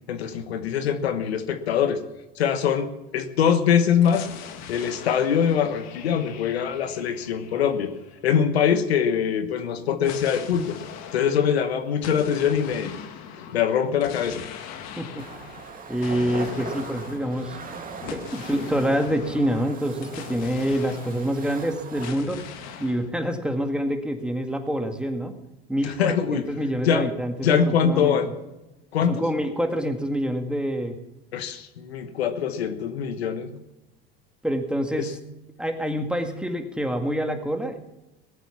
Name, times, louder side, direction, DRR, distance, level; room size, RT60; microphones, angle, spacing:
voice 1, 0.1-2.0 2.4-4.3 4.7-7.9 8.2-10.8 11.1-13.0 13.5-14.4 25.8-26.4 26.8-27.1 27.4-28.3 28.9-29.2 31.3-33.5 35.0-35.1, left 8 dB, 85° left, 10 dB, 1.2 m, -23 dB
sound 1, 4.0-8.7 10.0-21.7 22.0-23.1, left 8 dB, 55° left, 1.8 m, -41 dB
voice 2, 15.0-15.3 15.9-17.6 18.1-22.4 22.8-25.3 25.7-28.2 29.1-30.9 34.4-35.2 35.6-37.8, equal, 5° right, 5 dB, 1.9 m, -26 dB
sound 2, 15.2-22.1, right 5 dB, 25° right, 2.2 m, -40 dB
19.0 x 8.3 x 7.2 m, 0.98 s
hypercardioid pair, 85°, 31 cm